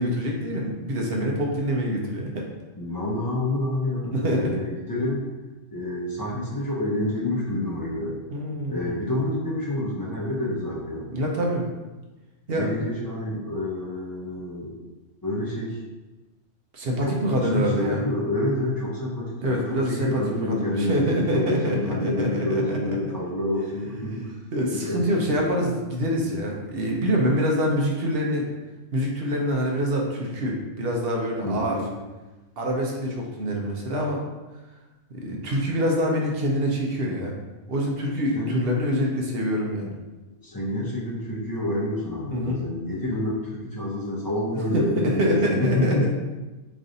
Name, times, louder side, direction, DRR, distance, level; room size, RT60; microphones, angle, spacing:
voice 1, 0.0-2.5 4.1-4.4 8.3-9.0 11.1-11.6 12.5-12.7 16.7-18.0 19.4-23.0 24.5-28.5 28.9-31.8 32.6-34.2 35.1-37.3 37.7-39.9 42.3-42.6 44.7-46.0, equal, 55° right, -1 dB, 0.8 m, -25 dB
voice 2, 2.8-5.2 5.7-8.2 8.7-11.1 12.5-14.7 15.2-15.8 17.0-24.3 24.7-25.5 31.4-32.0 38.3-38.7 40.4-46.1, left 1 dB, 25° left, -5 dB, 0.4 m, -28 dB
3.1 x 2.6 x 3.8 m, 1.2 s
omnidirectional pair, 1.4 m